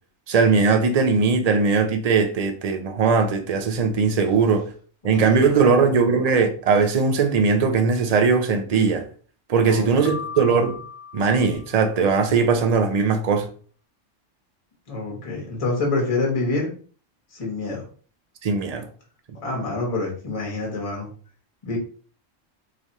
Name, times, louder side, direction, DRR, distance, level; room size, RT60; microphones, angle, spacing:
voice 1, 0.3-4.7 5.0-9.1 9.5-10.8 11.1-13.5 18.4-18.8, right 5 dB, 50° right, 0.4 m, -19 dB
voice 2, 5.0-6.0 9.6-10.2 14.9-16.7 17.3-17.9 19.4-21.1 21.6-21.8, left 3 dB, 30° left, 1.1 m, -27 dB
Piano, 10.1-12.2, left 6 dB, 70° left, 1.1 m, -38 dB
3.3 x 2.4 x 4.1 m
omnidirectional pair, 1.3 m